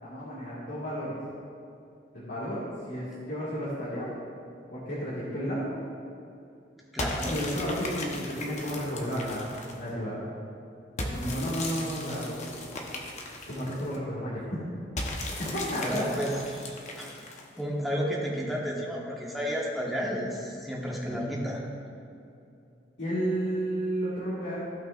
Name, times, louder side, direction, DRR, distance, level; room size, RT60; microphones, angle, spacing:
voice 1, 0.0-1.2 2.1-4.1 4.7-5.8 7.2-9.5 9.7-10.2 11.0-12.6 13.5-14.4 15.4-16.1 21.1-21.3 23.0-24.6, equal, 70° left, -10 dB, 2.0 m, -32 dB
voice 2, 6.9-7.4 15.7-17.2 17.6-21.6, equal, ahead, -5 dB, 1.4 m, -32 dB
sound 1, 7.0-9.9 11.0-14.0 15.0-17.6, left 1 dB, 40° left, 1.0 m, -37 dB
15.5 x 5.7 x 2.5 m, 2.6 s
head